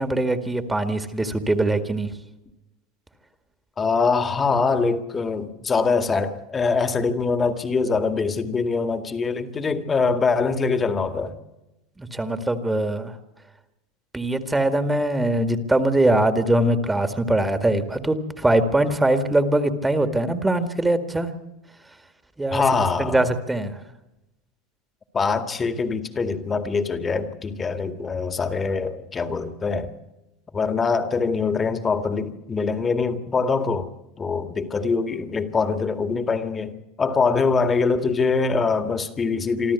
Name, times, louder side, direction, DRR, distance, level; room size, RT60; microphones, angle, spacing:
voice 1, 0.0-2.1 12.0-13.1 14.1-21.3 22.4-22.6 23.0-23.8, right 1 dB, 10° right, 2.0 m, -22 dB
voice 2, 3.8-11.4 22.5-23.3 25.1-29.9 30.5-33.9 34.2-39.7, left 4 dB, 25° left, 2.0 m, -23 dB
25.0 x 13.5 x 8.3 m
hypercardioid pair, 105°, 0 cm